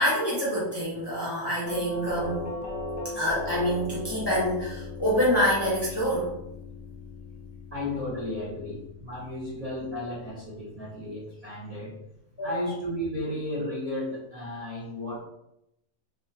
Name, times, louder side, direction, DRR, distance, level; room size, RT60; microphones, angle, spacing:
voice 1, 0.0-2.4 3.1-6.3 12.4-12.6, equal, 20° left, -7 dB, 0.8 m, -26 dB
Doorbell, 1.7-10.5, left 2 dB, 50° left, 0.8 m, -38 dB
voice 2, 7.7-12.0 12.4-15.2, left 1 dB, 30° right, -9 dB, 0.8 m, -34 dB
3.6 x 2.9 x 2.8 m, 0.83 s
omnidirectional pair, 1.5 m